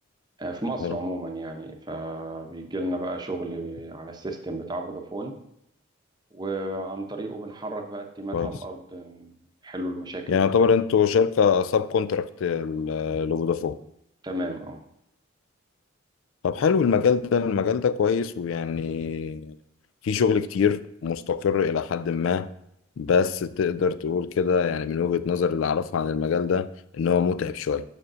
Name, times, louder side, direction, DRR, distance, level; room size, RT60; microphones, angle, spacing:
voice 1, 0.4-5.4 6.3-10.5 14.2-14.8, right 1 dB, 20° right, 3 dB, 0.8 m, -33 dB
voice 2, 10.3-13.8 16.4-19.6 20.0-22.5 23.0-26.7 26.9-27.8, left 6 dB, 70° left, 14 dB, 0.3 m, -23 dB
5.7 x 5.2 x 6.1 m, 0.78 s
head